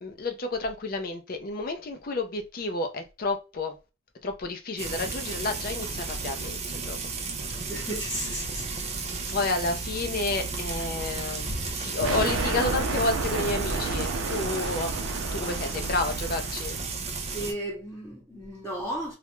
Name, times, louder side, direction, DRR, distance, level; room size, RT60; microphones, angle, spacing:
voice 1, 0.0-3.8 4.2-7.0 9.3-14.9 15.3-16.8, left 3 dB, 45° left, 0.5 m, -30 dB
Frying (food), 4.8-17.5, right 4 dB, 35° right, 0.4 m, -34 dB
voice 2, 7.7-8.9 17.3-19.1, right 1 dB, 10° left, 0.7 m, -34 dB
sound 1, 12.0-16.9, right 3 dB, 90° right, 0.4 m, -31 dB
2.3 x 2.1 x 2.9 m
head